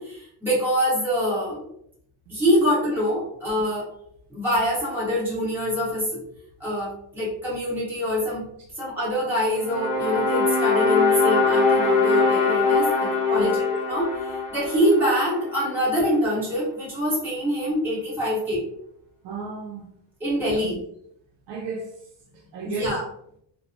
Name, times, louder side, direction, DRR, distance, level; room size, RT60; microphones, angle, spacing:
voice 1, 0.0-1.7 2.3-3.9 4.3-6.2 6.6-8.5 8.7-13.6 13.9-18.6 20.2-20.8 22.6-23.0, equal, 5° right, 1.1 m, -25 dB
sound 1, 9.6-15.8, left 4 dB, 60° left, 0.9 m, -22 dB
voice 2, 19.2-19.9 20.6-20.8 21.5-21.9 22.3-23.0, right 4 dB, 60° right, 0.5 m, -33 dB
2.9 x 2.0 x 2.5 m
cardioid pair, 175°, 48 cm